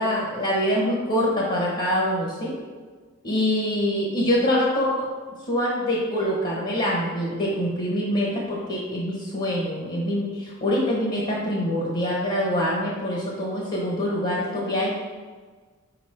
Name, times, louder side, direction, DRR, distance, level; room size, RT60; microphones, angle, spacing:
voice 1, 0.0-2.5 3.2-5.1 5.5-15.0, equal, 45° left, -3 dB, 1.1 m, -25 dB
5.6 x 5.0 x 4.4 m, 1.4 s
head